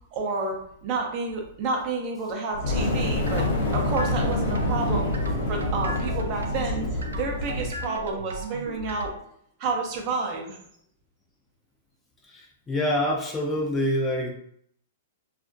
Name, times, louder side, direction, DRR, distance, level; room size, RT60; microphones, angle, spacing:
voice 1, 0.1-3.5 3.7-5.2 5.5-9.1 9.6-10.6, right 3 dB, 40° right, 1 dB, 0.6 m, -30 dB
Fire, 2.5-7.8, left 1 dB, 70° left, 0.6 m, -27 dB
sound 1, 2.8-9.1, right 2 dB, 90° right, 0.3 m, -36 dB
voice 2, 12.3-14.3, left 1 dB, 15° left, -1 dB, 0.5 m, -26 dB
2.4 x 2.0 x 2.5 m, 0.68 s
hypercardioid pair, 130°, 0 cm